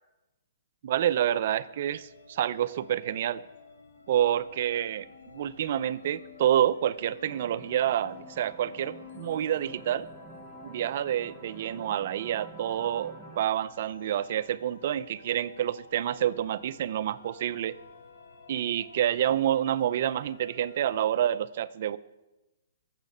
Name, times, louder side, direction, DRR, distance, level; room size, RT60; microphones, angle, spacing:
voice 1, 0.8-3.4 4.1-5.1 5.3-10.1 10.6-17.8 18.5-22.0, right 11 dB, 50° right, 14 dB, 0.5 m, -28 dB
sound 1, 1.2-21.0, left 5 dB, 90° left, 2.2 m, -52 dB
sound 2, 7.2-13.4, right 3 dB, 5° right, 0.8 m, -49 dB
22.0 x 7.4 x 5.5 m, 1.0 s
hypercardioid pair, 160°, 0 cm